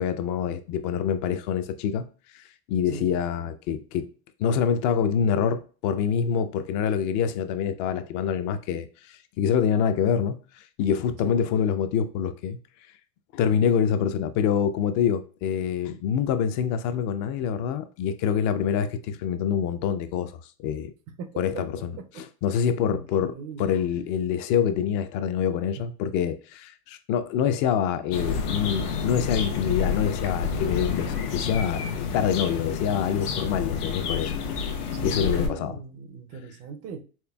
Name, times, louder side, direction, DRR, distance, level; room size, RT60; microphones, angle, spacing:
voice 1, 0.0-2.1 2.3-4.1 4.4-12.6 13.3-20.9 21.4-23.3 23.6-34.3 35.0-35.7, left 8 dB, 45° left, 0.5 m, -26 dB
voice 2, 2.9-3.2 11.2-11.4 21.1-22.3 22.9-23.7 25.8-25.9 34.9-37.0, right 5 dB, 35° right, 0.4 m, -40 dB
sound 1, 28.1-35.5, left 6 dB, 85° left, 0.9 m, -29 dB
4.3 x 3.2 x 2.2 m
supercardioid pair, 110°, 45 cm